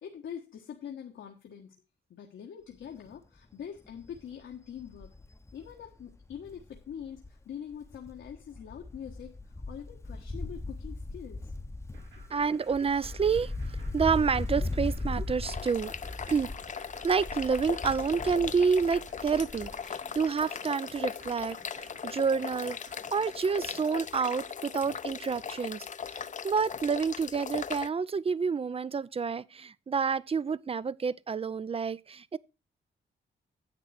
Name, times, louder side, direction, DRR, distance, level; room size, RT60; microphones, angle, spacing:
voice 1, 0.0-1.8 2.1-5.2 5.5-11.5, left 8 dB, 85° left, 1.4 m, -44 dB
Wind, 2.8-3.1 3.5-3.6 3.9-7.4 7.7-19.9 20.2-20.3, left 2 dB, 15° left, 0.8 m, -38 dB
sound 1, 11.9-23.8, right 3 dB, 85° right, 4.5 m, -55 dB
voice 2, 12.3-13.5 13.9-15.9 16.3-16.5 17.0-22.8 23.1-32.4, right 5 dB, 30° right, 0.5 m, -29 dB
sound 2, 15.4-27.9, left 7 dB, 40° left, 0.5 m, -39 dB
10.5 x 7.8 x 4.3 m
cardioid pair, 85°, 19 cm